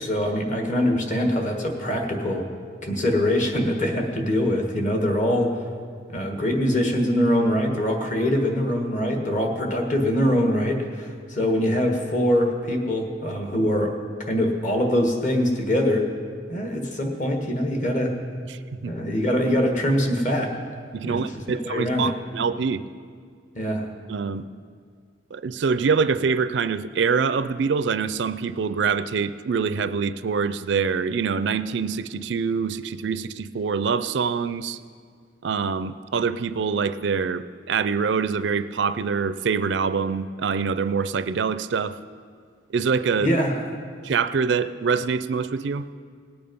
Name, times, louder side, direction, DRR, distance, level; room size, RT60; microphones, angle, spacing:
voice 1, 0.0-2.4 2.8-5.5 6.1-16.1 16.5-18.2 18.9-20.5 21.0-21.2 21.6-22.1 23.5-23.9 43.2-43.6, equal, 40° left, 3 dB, 1.6 m, -23 dB
voice 2, 18.5-18.9 20.9-22.8 24.1-24.4 25.3-34.8 35.4-42.0 42.7-43.3 44.0-45.8, right 5 dB, 65° right, 14 dB, 0.4 m, -25 dB
18.5 x 8.8 x 5.3 m, 2.1 s
head